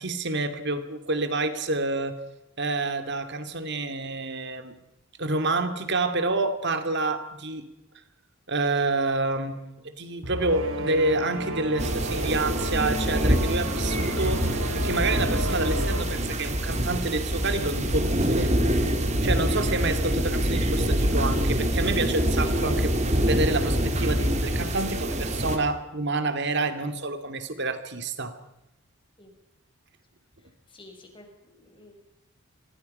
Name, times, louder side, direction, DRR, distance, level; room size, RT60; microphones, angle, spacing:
voice 1, 0.0-2.2 2.6-4.7 5.2-7.6 8.5-14.5 14.7-18.5 19.2-28.4, right 2 dB, 55° right, 9 dB, 2.6 m, -28 dB
sound 1, 10.2-16.0, equal, 75° right, 3.6 m, -32 dB
sound 2, 11.8-25.6, equal, 35° right, 3.1 m, -25 dB
voice 2, 30.7-31.9, left 2 dB, 25° left, 3 dB, 5.2 m, -50 dB
28.5 x 22.5 x 5.6 m, 0.87 s
head